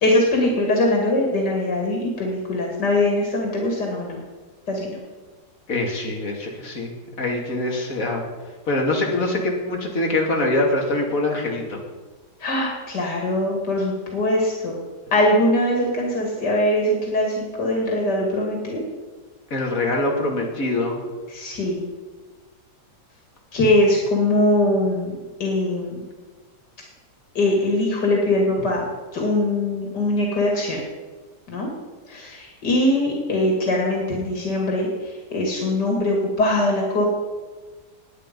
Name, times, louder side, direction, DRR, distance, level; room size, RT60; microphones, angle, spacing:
voice 1, 0.0-4.2 4.7-5.0 12.4-14.8 15.1-18.8 21.3-21.8 23.5-26.0 27.3-28.8 29.1-30.8 31.5-31.7 32.1-34.9 35.3-37.1, left 1 dB, 90° left, 0 dB, 3.0 m, -21 dB
voice 2, 5.7-8.2 8.7-11.8 19.5-21.0, left 2 dB, 55° left, 0 dB, 2.8 m, -24 dB
20.0 x 8.7 x 5.3 m, 1.3 s
omnidirectional pair, 1.8 m